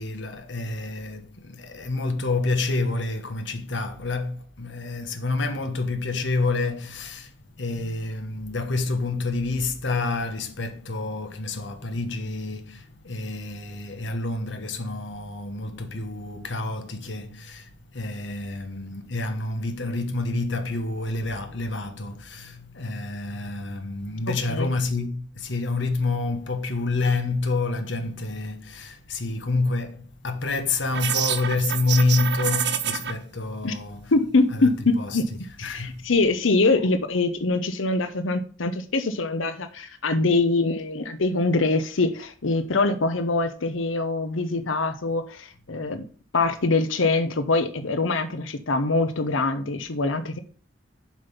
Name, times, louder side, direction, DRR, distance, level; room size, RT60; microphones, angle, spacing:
voice 1, 0.0-7.3 7.6-17.7 17.9-34.0 34.6-34.7 35.0-35.2 35.6-36.0, left 3 dB, 70° left, 1.3 m, -28 dB
voice 2, 24.3-24.7 33.6-33.7 34.1-35.2 35.6-46.1 46.3-50.4, left 3 dB, 85° left, 0.8 m, -24 dB
sound 1, 30.9-33.1, right 9 dB, 60° right, 0.8 m, -27 dB
7.4 x 5.3 x 5.7 m
head